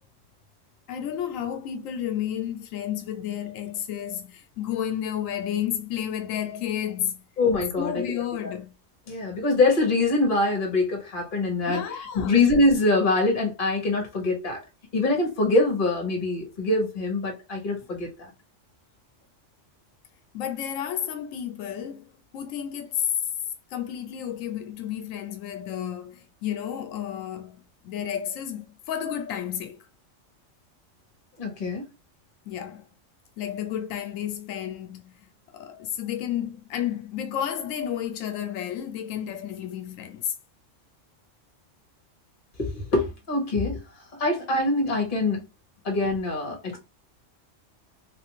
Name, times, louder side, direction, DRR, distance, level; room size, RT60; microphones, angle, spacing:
voice 1, 0.9-7.2 7.8-8.7 11.7-12.4 20.3-23.1 23.7-29.8 32.5-32.8 33.4-35.3 35.5-40.3, left 10 dB, 90° left, 1.0 m, -31 dB
voice 2, 7.4-8.0 8.4-8.5 9.1-11.8 12.1-14.6 14.9-18.1 31.4-31.8 42.6-43.8 44.2-45.5 45.8-46.8, left 2 dB, 45° left, 1.2 m, -24 dB
3.4 x 2.5 x 3.0 m
omnidirectional pair, 1.3 m